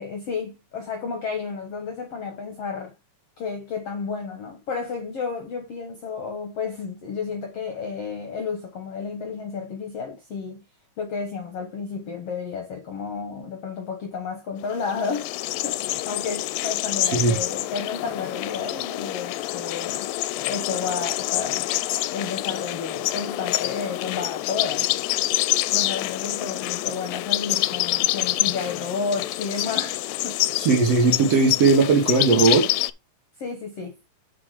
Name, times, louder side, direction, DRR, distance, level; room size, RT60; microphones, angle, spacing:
voice 1, 0.0-2.9 3.4-10.6 11.0-15.3 15.6-20.1 20.5-21.7 22.1-24.9 25.7-30.4 33.4-34.0, left 5 dB, 60° left, 1.8 m, -32 dB
sound 1, 14.7-32.9, left 17 dB, 80° left, 2.2 m, -27 dB
voice 2, 30.6-32.7, right 4 dB, 55° right, 2.0 m, -18 dB
7.0 x 5.1 x 4.9 m
omnidirectional pair, 4.2 m